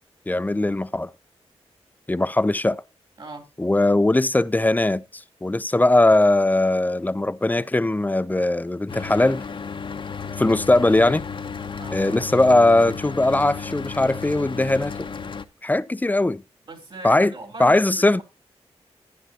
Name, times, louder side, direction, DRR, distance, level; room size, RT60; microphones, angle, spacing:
voice 1, 0.3-1.1 2.1-2.8 3.6-9.4 10.4-11.2 11.9-15.1 15.6-16.4 17.0-17.3 17.6-18.2, left 2 dB, 15° left, 0.5 m, -20 dB
voice 2, 3.2-3.5 11.7-12.0 16.6-18.2, right 2 dB, 50° right, 3.3 m, -39 dB
Mechanical fan, 8.9-15.5, left 6 dB, 50° left, 0.8 m, -33 dB
11.5 x 10.0 x 2.8 m
cardioid pair, 60°, 11 cm